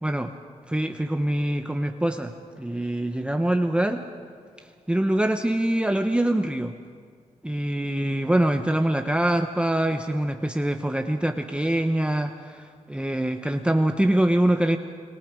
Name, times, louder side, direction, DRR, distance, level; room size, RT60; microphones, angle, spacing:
voice 1, 0.0-0.3 0.7-4.0 4.9-6.7 7.4-14.8, right 1 dB, 10° right, 6 dB, 0.8 m, -24 dB
26.5 x 22.0 x 5.0 m, 2.1 s
cardioid pair, 75°, 14 cm